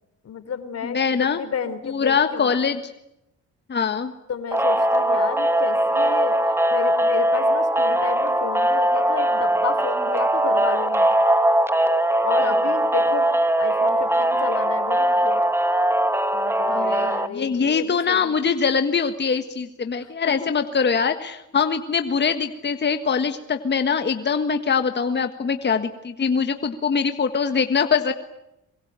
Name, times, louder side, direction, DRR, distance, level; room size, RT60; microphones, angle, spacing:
voice 1, 0.2-2.6 4.3-11.1 12.2-13.3 13.6-15.4 16.3-18.3 20.4-20.5, left 6 dB, 55° left, 12 dB, 3.5 m, -31 dB
voice 2, 0.8-1.4 1.8-2.9 3.7-4.1 12.4-12.5 16.7-28.1, left 6 dB, 35° left, 8 dB, 1.6 m, -23 dB
sound 1, 4.5-17.3, right 1 dB, 10° right, 1.5 m, -20 dB
24.5 x 23.0 x 9.0 m, 0.86 s
cardioid pair, 90°, 30 cm